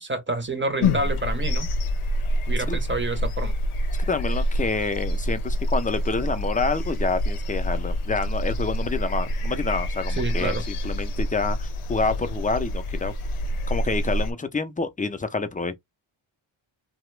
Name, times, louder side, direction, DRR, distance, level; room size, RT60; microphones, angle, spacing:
voice 1, 0.0-1.7 2.5-3.5 10.2-10.6, right 2 dB, 25° right, 0.6 m, -28 dB
sound 1, 0.8-14.3, left 1 dB, 85° left, 0.6 m, -27 dB
voice 2, 4.1-13.1 13.7-15.8, left 4 dB, 20° left, 0.4 m, -28 dB
2.8 x 2.0 x 3.1 m
wide cardioid pair, 120°, 49 cm